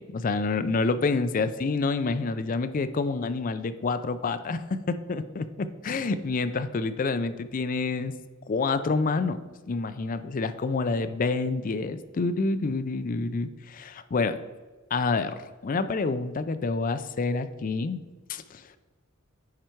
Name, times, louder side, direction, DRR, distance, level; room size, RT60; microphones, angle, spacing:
voice 1, 0.0-8.1 8.5-9.4 9.7-14.4 14.9-18.0 18.3-18.6, left 3 dB, 40° left, 12 dB, 0.4 m, -28 dB
9.7 x 4.6 x 4.5 m, 1.3 s
head